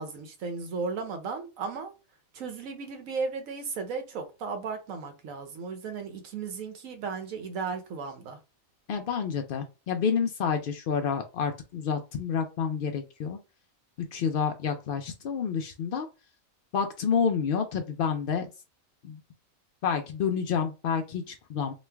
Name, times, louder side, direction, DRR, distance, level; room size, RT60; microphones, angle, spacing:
voice 1, 0.0-1.9 2.3-8.4, right 5 dB, 70° right, 1.1 m, -35 dB
voice 2, 8.9-13.4 14.0-16.1 16.7-18.5 19.0-19.2 19.8-21.7, left 6 dB, 85° left, 0.4 m, -29 dB
3.0 x 2.4 x 3.3 m
omnidirectional pair, 1.5 m